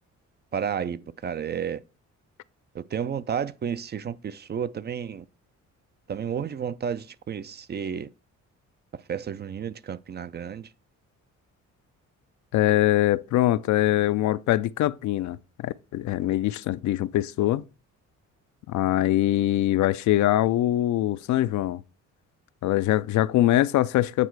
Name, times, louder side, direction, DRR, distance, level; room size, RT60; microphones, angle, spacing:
voice 1, 0.5-1.8 2.7-5.2 6.1-8.1 9.1-10.7, right 8 dB, 35° right, 0.4 m, -31 dB
voice 2, 12.5-17.6 18.7-21.8 22.6-24.3, left 14 dB, 70° left, 0.5 m, -23 dB
8.4 x 4.2 x 4.6 m
cardioid pair, 90°, 30 cm